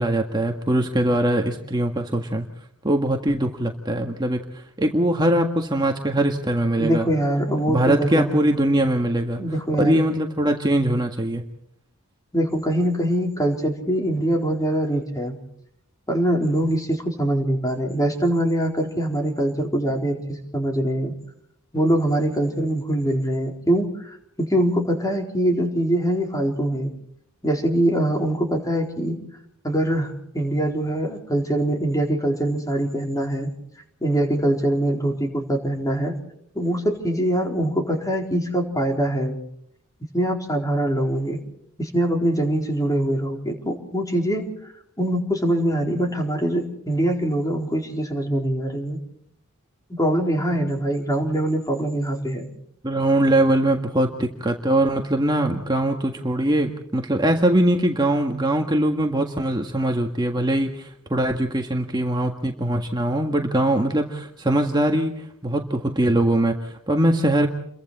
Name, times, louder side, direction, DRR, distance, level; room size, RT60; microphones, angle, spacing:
voice 1, 0.0-2.5 2.8-7.1 7.7-9.4 9.8-11.4 52.8-67.5, right 1 dB, 20° right, 2 dB, 1.7 m, -22 dB
voice 2, 6.8-8.3 9.4-10.0 12.3-15.4 16.1-21.1 21.7-26.9 27.4-29.2 29.6-33.5 34.0-36.2 36.5-39.4 40.1-41.4 41.8-44.7 45.0-49.0 49.9-52.5, right 1 dB, 15° left, 2 dB, 4.2 m, -23 dB
30.0 x 23.5 x 4.3 m, 0.72 s
head